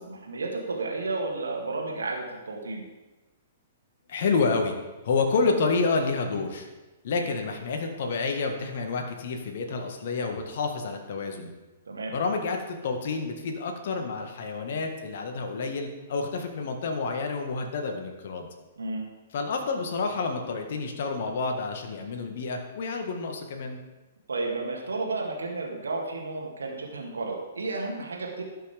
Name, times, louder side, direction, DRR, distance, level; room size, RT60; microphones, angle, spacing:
voice 1, 0.0-2.8 11.9-12.2 18.8-19.1 24.3-28.4, right 3 dB, 70° right, -1 dB, 2.2 m, -32 dB
voice 2, 4.1-4.7 5.0-6.7 7.0-11.5 12.1-18.5 19.3-23.8, left 4 dB, 55° left, 4 dB, 1.7 m, -29 dB
17.5 x 6.1 x 3.6 m, 1.1 s
figure-of-eight pair, 115°, 0 cm